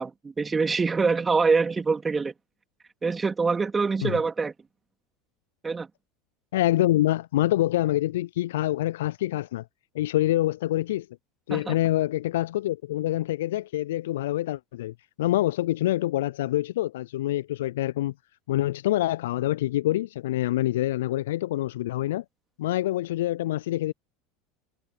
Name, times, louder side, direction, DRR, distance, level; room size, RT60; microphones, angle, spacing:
voice 1, 0.0-2.3 3.0-4.5 5.6-5.9 11.5-11.7, right 4 dB, 20° right, 3.2 m, -25 dB
voice 2, 6.5-9.6 9.9-11.1 11.5-18.1 18.5-22.2 22.6-23.9, left 15 dB, 70° left, 0.5 m, -26 dB
figure-of-eight pair, 80°, 0 cm